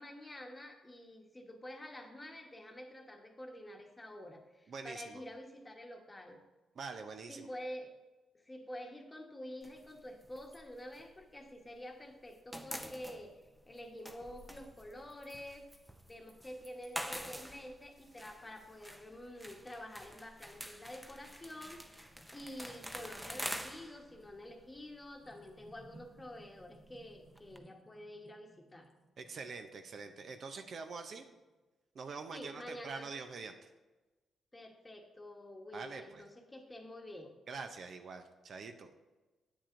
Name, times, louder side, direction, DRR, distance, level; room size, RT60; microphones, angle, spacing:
voice 1, 0.0-6.4 7.3-7.9 8.3-15.6 16.1-21.8 22.3-28.9 32.3-33.1 34.5-37.4, left 1 dB, 20° left, 3 dB, 1.2 m, -48 dB
voice 2, 4.7-5.2 6.8-7.5 29.2-31.3 31.9-33.7 35.7-36.2 37.5-38.9, right 4 dB, 60° right, 7 dB, 0.6 m, -45 dB
sound 1, 9.6-11.9 12.1-27.6, equal, 5° right, 0.6 m, -47 dB
sound 2, 21.5-31.6, right 2 dB, 40° right, 1.2 m, -63 dB
8.7 x 7.2 x 2.6 m, 1.2 s
cardioid pair, 80°, 0 cm